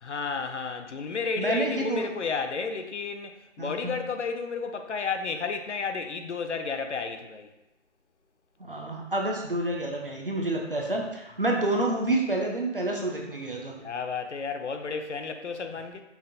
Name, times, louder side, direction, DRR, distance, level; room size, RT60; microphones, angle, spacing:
voice 1, 0.0-7.5 13.8-16.0, left 5 dB, 65° left, 6 dB, 0.5 m, -32 dB
voice 2, 1.4-2.1 3.6-4.0 8.6-13.7, right 2 dB, 45° right, 0 dB, 0.5 m, -28 dB
5.5 x 2.3 x 2.6 m, 0.91 s
figure-of-eight pair, 180°, 38 cm